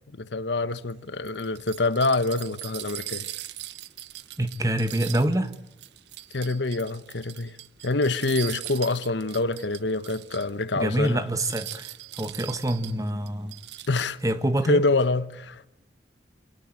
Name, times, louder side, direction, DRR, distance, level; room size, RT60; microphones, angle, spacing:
voice 1, 0.2-3.3 6.3-7.6 7.8-11.2 13.9-14.2 14.7-15.7, left 2 dB, 85° left, 1.1 m, -26 dB
sound 1, 0.7-10.6 11.0-11.1 11.3-14.3, right 15 dB, 80° right, 0.8 m, -40 dB
voice 2, 4.4-5.5 10.8-13.6 14.2-14.8, right 1 dB, 20° right, 1.4 m, -26 dB
26.0 x 19.5 x 7.7 m
head